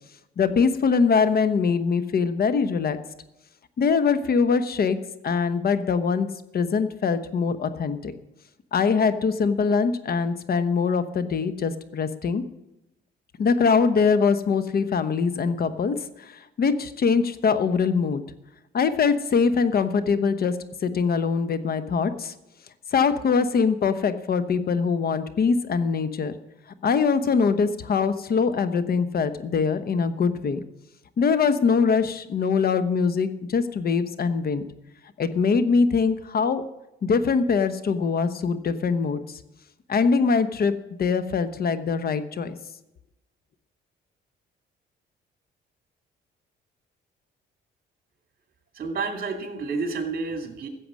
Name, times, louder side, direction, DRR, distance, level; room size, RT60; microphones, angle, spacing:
voice 1, 0.4-3.0 3.8-5.0 5.2-6.3 6.5-8.1 8.7-12.4 13.4-18.2 18.7-20.6 20.8-22.3 22.9-26.3 26.8-30.6 31.2-34.6 35.2-36.6 37.0-39.4 39.9-40.7 41.0-42.6, left 5 dB, 50° left, 11 dB, 1.0 m, -23 dB
voice 2, 48.7-50.7, right 4 dB, 50° right, 4 dB, 2.6 m, -30 dB
14.5 x 7.7 x 6.4 m, 0.92 s
cardioid pair, 90°, 20 cm